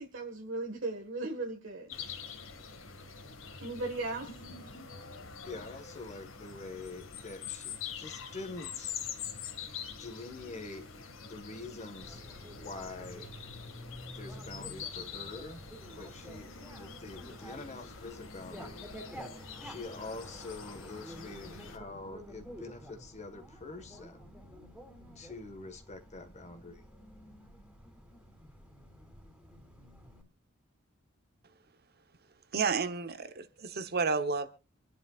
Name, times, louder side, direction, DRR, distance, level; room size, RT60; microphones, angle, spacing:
voice 1, 0.0-2.2 3.6-4.2, right 2 dB, 70° right, 1.7 m, -37 dB
sound 1, 1.9-21.8, left 7 dB, 80° left, 2.0 m, -45 dB
voice 2, 4.2-4.9 5.2-8.9 9.9-10.8 11.2-13.3 14.1-15.6 15.9-18.9 19.6-24.3 25.1-26.8, left 3 dB, 35° left, 1.6 m, -45 dB
Bicycle, 12.0-30.2, equal, 5° right, 3.1 m, -50 dB
voice 3, 32.5-34.5, right 5 dB, 50° right, 1.0 m, -31 dB
26.5 x 10.5 x 2.4 m
head